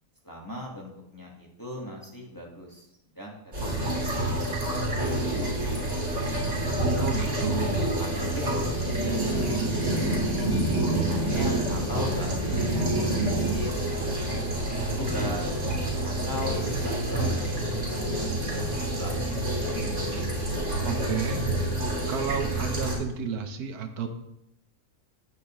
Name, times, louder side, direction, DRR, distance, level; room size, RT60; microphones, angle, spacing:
voice 1, 0.2-2.9 3.1-3.7 4.0-4.3 4.8-6.7 8.0-10.5 11.1-13.9 14.3-15.5 16.0-17.4 17.9-19.1 19.4-20.0, left 1 dB, 15° left, -2 dB, 1.4 m, -39 dB
sound 1, 3.5-22.9, right 1 dB, 35° right, 3.6 m, -27 dB
voice 2, 7.0-7.9 20.8-21.4 22.1-24.1, right 6 dB, 75° right, 6 dB, 1.3 m, -31 dB
10.0 x 8.8 x 3.0 m, 0.83 s
omnidirectional pair, 1.7 m